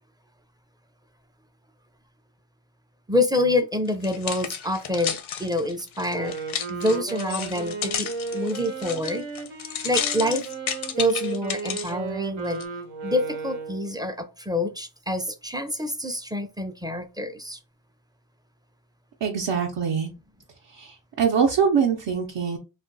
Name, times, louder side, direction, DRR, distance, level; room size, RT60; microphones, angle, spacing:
voice 1, 3.1-6.3 6.7-9.3 9.8-10.4 11.0-12.6 13.0-17.6, left 1 dB, 10° right, 0.4 m, -27 dB
sound 1, 3.9-11.9 12.5-12.6, left 8 dB, 80° left, 0.6 m, -32 dB
Wind instrument woodwind instrument, 5.9-13.9, right 4 dB, 85° right, 1.0 m, -34 dB
voice 2, 19.2-20.1 20.7-22.6, right 6 dB, 65° right, 0.7 m, -23 dB
2.4 x 2.3 x 3.8 m
cardioid pair, 60°, 47 cm